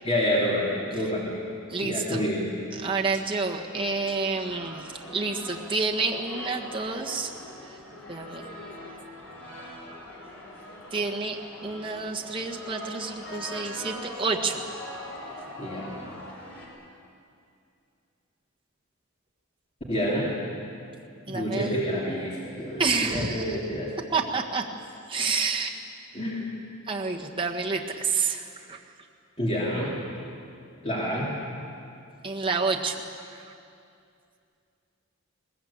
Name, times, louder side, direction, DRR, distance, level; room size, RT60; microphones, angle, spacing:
voice 1, 0.0-1.4 1.8-2.4 15.6-15.9 19.9-20.3 21.3-23.9 25.2-25.3 26.1-26.5 29.4-30.0 30.8-31.3, equal, 25° left, -5 dB, 3.4 m, -28 dB
voice 2, 1.7-2.3 2.7-4.9 5.1-7.3 8.1-8.5 10.9-14.6 21.3-21.8 22.8-23.5 24.1-24.6 25.1-25.8 26.9-28.8 32.2-33.0 33.3-33.4, right 4 dB, 25° right, 0 dB, 1.6 m, -29 dB
sound 1, 3.7-16.7, left 1 dB, 65° left, 5.5 m, -42 dB
21.5 x 19.5 x 8.7 m, 2.5 s
head